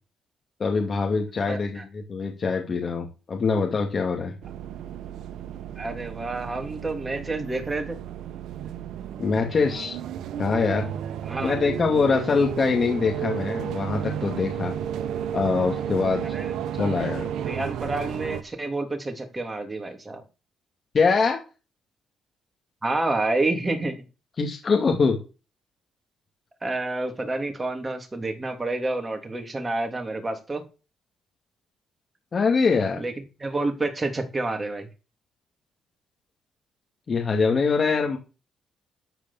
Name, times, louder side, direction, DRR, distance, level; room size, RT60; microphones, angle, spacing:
voice 1, 0.6-4.3 9.2-10.0 10.4-10.9 11.4-14.7 15.3-16.2 16.8-17.3 20.9-21.4 24.4-25.2 32.3-33.0 37.1-38.2, left 4 dB, 40° left, 1 dB, 2.4 m, -23 dB
voice 2, 1.5-1.8 5.8-8.0 11.3-11.6 16.3-16.5 17.4-20.2 22.8-23.9 26.6-30.6 33.0-33.1 33.4-34.9, right 2 dB, 20° right, 5 dB, 3.1 m, -29 dB
New Bus Ambience, 4.4-18.4, right 10 dB, 80° right, 1.1 m, -33 dB
12.5 x 5.1 x 7.3 m, 0.32 s
cardioid pair, 90°, 0 cm